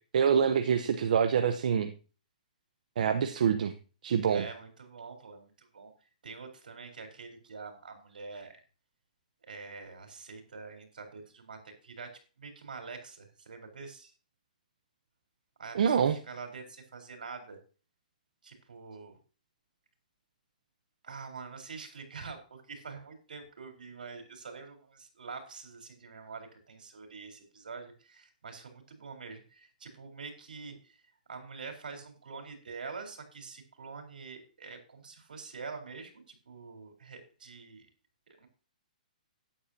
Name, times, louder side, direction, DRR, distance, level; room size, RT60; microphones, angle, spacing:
voice 1, 0.1-1.9 3.0-3.7 4.0-4.5 15.7-16.2, right 7 dB, 65° right, 8 dB, 1.0 m, -26 dB
voice 2, 4.3-5.9 6.2-8.6 9.5-12.1 12.4-14.1 15.6-17.6 18.4-19.1 21.0-31.0 31.3-37.9 38.4-38.5, right 4 dB, 90° right, 5 dB, 4.4 m, -45 dB
13.0 x 10.0 x 2.9 m, 0.35 s
hypercardioid pair, 150°, 5 cm